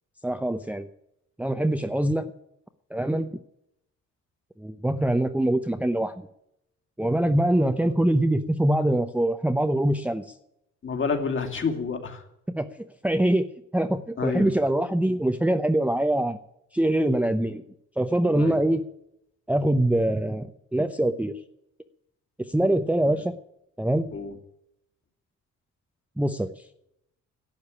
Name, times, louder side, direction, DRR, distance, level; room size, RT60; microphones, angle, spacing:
voice 1, 0.2-0.9 1.4-2.3 2.9-3.3 4.6-6.1 7.0-10.2 12.6-12.7 13.0-13.5 13.7-16.4 16.7-17.6 18.0-18.8 19.5-21.3 22.5-23.4 23.8-24.1 26.2-26.5, right 1 dB, 5° right, 8 dB, 0.8 m, -23 dB
voice 2, 10.8-12.2 14.2-14.5 18.3-18.6 23.1-23.2 24.1-24.3, left 5 dB, 40° left, 4 dB, 2.8 m, -29 dB
12.0 x 8.0 x 9.9 m, 0.78 s
cardioid pair, 90°, 30 cm